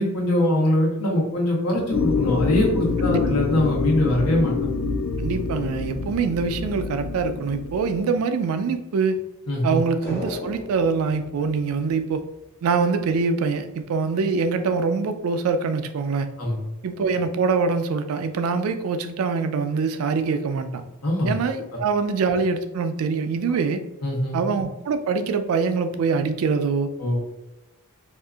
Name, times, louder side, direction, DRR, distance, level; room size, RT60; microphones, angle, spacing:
voice 1, 0.0-4.5 9.5-9.8 16.4-16.6 21.0-21.3 21.7-21.8 23.5-23.6 24.0-24.4 27.0-27.2, left 1 dB, 90° left, -3 dB, 1.1 m, -22 dB
sound 1, 1.9-8.0, left 5 dB, 60° left, 0.3 m, -26 dB
voice 2, 5.2-9.2 9.6-12.2 12.6-16.3 16.8-20.8 21.3-23.8 24.3-26.9, right 5 dB, 70° right, 9 dB, 0.3 m, -24 dB
sound 2, 10.0-12.5 12.8-12.9, left 1 dB, 45° left, 0.9 m, -36 dB
2.7 x 2.4 x 2.3 m, 0.97 s
head